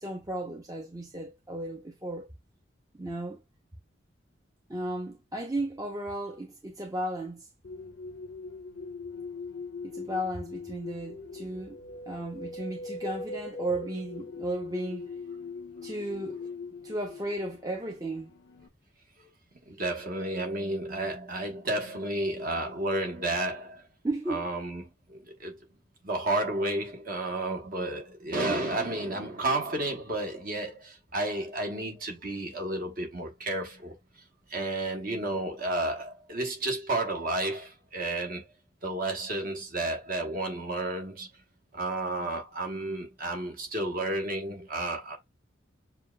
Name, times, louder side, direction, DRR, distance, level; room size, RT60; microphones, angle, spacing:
voice 1, 0.0-2.3 2.9-3.4 4.7-7.5 9.8-11.8 12.1-15.1 15.8-16.4 16.8-18.3 24.0-24.5, right 1 dB, 20° right, 0.7 m, -34 dB
sound 1, 7.6-18.7, left 3 dB, 75° left, 0.7 m, -41 dB
voice 2, 19.7-23.8 24.3-25.6 26.0-33.9 34.5-38.5 38.8-41.3 41.7-45.2, right 2 dB, 45° right, 1.1 m, -32 dB
6.8 x 2.4 x 2.2 m
head